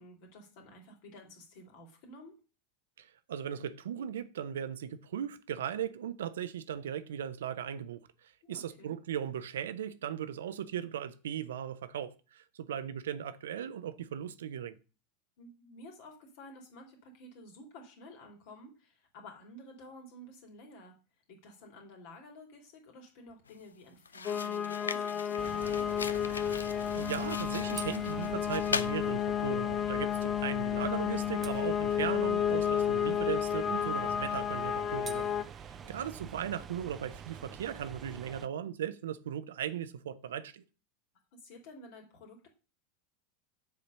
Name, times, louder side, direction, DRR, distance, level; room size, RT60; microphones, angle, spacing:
voice 1, 0.0-2.3 8.4-8.9 15.4-20.9 21.3-25.9 35.8-36.0 41.4-42.5, left 1 dB, 55° left, 2.6 m, -52 dB
voice 2, 3.0-14.8 26.5-35.3 35.6-40.6, right 9 dB, 75° right, 0.7 m, -38 dB
sound 1, 23.5-23.7 24.1-29.0, left 5 dB, 85° left, 0.4 m, -40 dB
sound 2, 24.3-35.4, left 9 dB, 35° left, 0.6 m, -31 dB
sound 3, 25.4-38.5, right 7 dB, 30° right, 0.5 m, -46 dB
7.0 x 4.3 x 6.6 m
hypercardioid pair, 90°, 0 cm